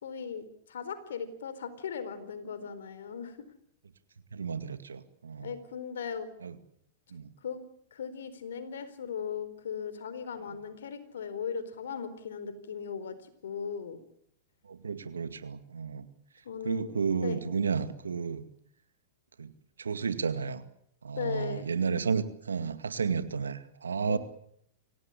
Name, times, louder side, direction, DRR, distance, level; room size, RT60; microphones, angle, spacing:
voice 1, 0.0-3.5 5.4-6.3 7.4-7.6 7.9-13.2 13.4-14.0 16.4-16.9 17.2-17.4 21.2-21.7 24.1-24.2, left 6 dB, 75° left, 11 dB, 4.3 m, -37 dB
voice 2, 4.3-5.5 6.4-6.6 7.1-7.3 14.7-16.1 16.6-18.4 19.4-19.5 19.8-20.6 21.0-24.2, right 6 dB, 85° right, 11 dB, 2.2 m, -32 dB
25.5 x 17.5 x 10.0 m, 0.70 s
hypercardioid pair, 105°, 0 cm